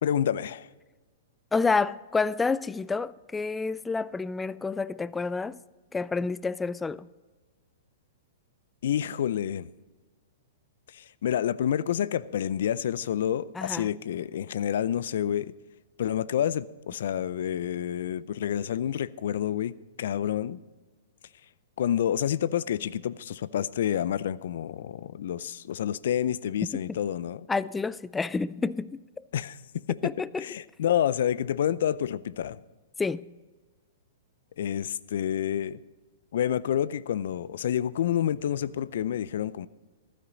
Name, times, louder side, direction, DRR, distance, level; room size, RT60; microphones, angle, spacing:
voice 1, 0.0-0.7 8.8-9.7 10.9-15.5 16.0-20.6 21.8-27.5 29.3-29.6 29.9-32.6 34.6-35.8 36.3-39.7, left 10 dB, 65° left, 0.5 m, -28 dB
voice 2, 1.5-5.6 5.9-7.1 13.5-13.9 26.9-27.0 27.5-29.2 30.0-30.4 33.0-33.2, left 4 dB, 10° left, 0.4 m, -29 dB
14.5 x 13.0 x 4.0 m
hypercardioid pair, 115°, 0 cm